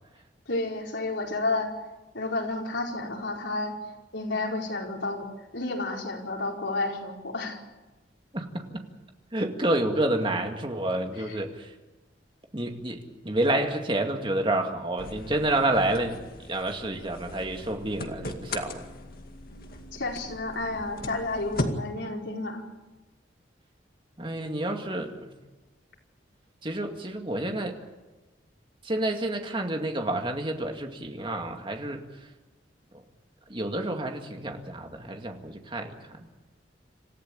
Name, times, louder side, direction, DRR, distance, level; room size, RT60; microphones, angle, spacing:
voice 1, 0.5-1.7 2.1-3.8 4.1-5.3 5.5-7.6 11.2-11.4 19.9-22.7, left 2 dB, 85° left, 0 dB, 4.9 m, -31 dB
voice 2, 9.3-11.7 12.5-18.8 24.2-25.3 26.6-27.8 28.8-32.3 32.9-33.0 33.5-36.3, right 1 dB, 30° right, 4 dB, 2.2 m, -29 dB
sound 1, 15.0-21.7, left 2 dB, 55° left, 2.2 m, -38 dB
27.5 x 15.0 x 8.8 m, 1.2 s
head